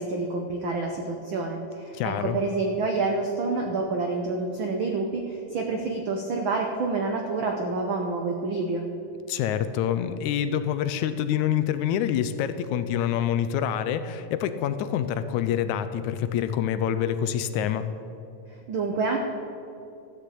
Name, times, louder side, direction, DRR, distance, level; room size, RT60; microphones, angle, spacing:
voice 1, 0.0-8.8 18.7-19.2, right 3 dB, 85° right, 2 dB, 1.1 m, -28 dB
voice 2, 1.9-2.4 9.3-17.9, left 9 dB, 80° left, 11 dB, 1.9 m, -26 dB
13.0 x 6.7 x 8.4 m, 2.7 s
omnidirectional pair, 3.6 m